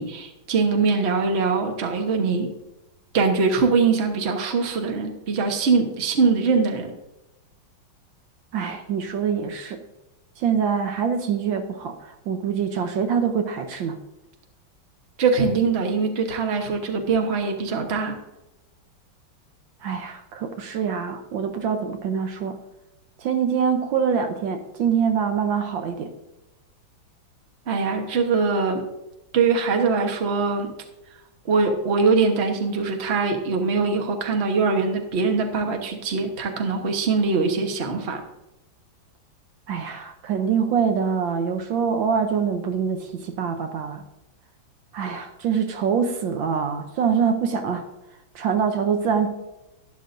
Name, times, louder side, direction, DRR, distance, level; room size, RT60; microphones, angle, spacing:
voice 1, 0.0-2.5 3.1-6.9 15.2-18.2 27.7-28.8 29.3-30.7 31.5-38.2, right 4 dB, 40° right, 4 dB, 1.2 m, -22 dB
voice 2, 8.5-9.8 10.4-14.0 19.8-22.6 23.2-26.1 39.7-44.0 44.9-47.8 48.3-49.3, right 6 dB, 75° right, 7 dB, 1.5 m, -24 dB
12.0 x 10.5 x 2.6 m, 0.97 s
omnidirectional pair, 2.2 m